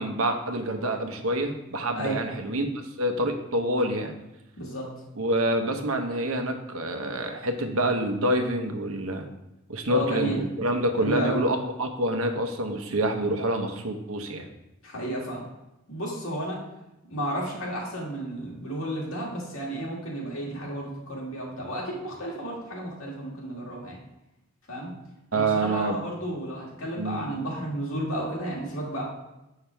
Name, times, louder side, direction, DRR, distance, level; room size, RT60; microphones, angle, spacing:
voice 1, 0.0-4.1 5.2-9.3 9.7-14.5 25.3-26.0 27.0-27.2, right 1 dB, 85° right, 6 dB, 0.9 m, -27 dB
voice 2, 4.6-4.9 9.9-10.4 11.0-11.4 14.8-15.5 15.9-16.6 17.1-24.0 24.7-24.9 25.3-29.0, right 1 dB, 75° left, -3 dB, 2.2 m, -32 dB
7.3 x 5.7 x 3.4 m, 0.91 s
head